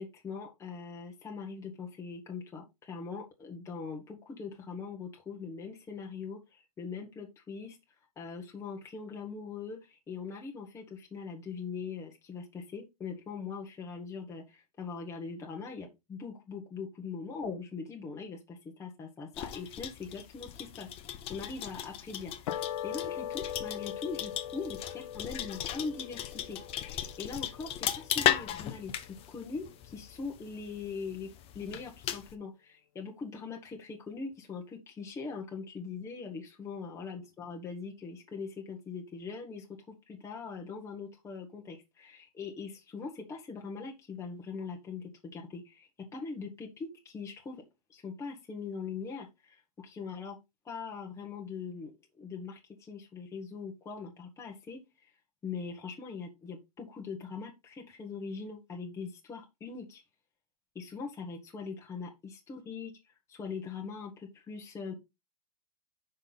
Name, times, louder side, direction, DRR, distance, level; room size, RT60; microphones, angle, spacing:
voice 1, 0.0-7.8 8.2-20.9 21.3-24.8 25.1-31.3 31.5-47.6 47.9-50.4 50.6-51.9 52.2-55.1 55.4-60.0 60.7-62.9 63.3-64.9, left 5 dB, 15° left, 1 dB, 1.2 m, -41 dB
sound 1, 19.3-32.3, left 11 dB, 30° left, 0.9 m, -37 dB
sound 2, 22.5-29.0, left 10 dB, 60° left, 1.0 m, -41 dB
5.9 x 5.5 x 4.0 m, 0.23 s
hypercardioid pair, 135°, 20 cm